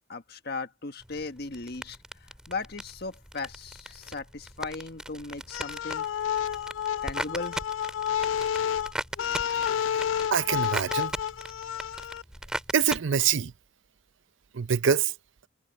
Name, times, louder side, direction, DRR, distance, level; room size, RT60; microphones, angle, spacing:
voice 1, 0.1-2.0 2.5-6.1 7.0-7.6, left 3 dB, 55° left, 1.5 m, -37 dB
sound 1, 1.0-13.0, right 1 dB, 5° right, 5.9 m, -39 dB
sound 2, 5.5-12.2, left 9 dB, 75° left, 0.3 m, -30 dB
voice 2, 10.3-11.1 12.7-13.5 14.5-15.1, right 7 dB, 75° right, 0.6 m, -25 dB
head